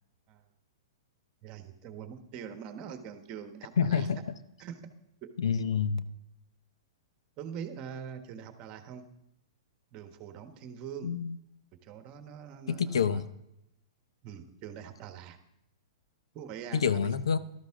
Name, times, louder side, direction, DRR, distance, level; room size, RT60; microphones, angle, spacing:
voice 1, 1.4-4.1 4.6-4.8 5.2-5.3 7.4-9.1 9.9-11.1 11.8-13.2 14.2-15.4 16.3-17.1, right 8 dB, 35° right, 8 dB, 1.3 m, -43 dB
voice 2, 3.8-4.2 5.4-6.1 11.0-11.4 12.7-13.3 16.7-17.4, left 6 dB, 80° left, 13 dB, 0.7 m, -27 dB
13.0 x 12.5 x 3.7 m, 0.82 s
hypercardioid pair, 125°, 3 cm